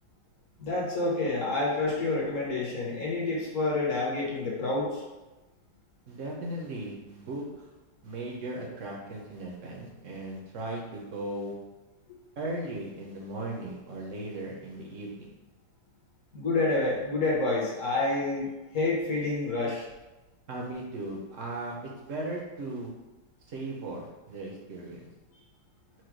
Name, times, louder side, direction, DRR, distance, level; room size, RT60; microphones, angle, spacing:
voice 1, 0.6-5.0 12.1-12.2 16.3-19.8, left 2 dB, 50° left, -4 dB, 1.3 m, -28 dB
voice 2, 6.1-7.7 8.0-11.5 12.4-15.3 20.5-21.8 22.0-22.9 23.5-25.1, right 1 dB, 55° right, -1 dB, 0.9 m, -37 dB
4.7 x 2.2 x 4.5 m, 1.1 s
omnidirectional pair, 2.1 m